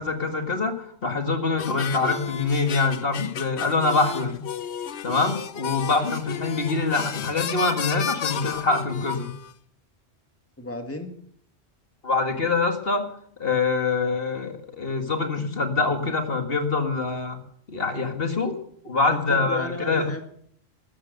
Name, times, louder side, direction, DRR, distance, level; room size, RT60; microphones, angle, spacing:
voice 1, 0.0-4.4 5.0-9.3 12.0-13.0 13.4-17.4 17.7-18.6 18.8-20.0, left 3 dB, 60° left, 5 dB, 2.1 m, -25 dB
sound 1, 1.6-9.5, left 9 dB, 85° left, 1.1 m, -33 dB
voice 2, 10.6-11.1 19.3-20.2, left 1 dB, 10° left, 5 dB, 1.9 m, -33 dB
14.0 x 13.0 x 6.6 m, 0.64 s
omnidirectional pair, 1.1 m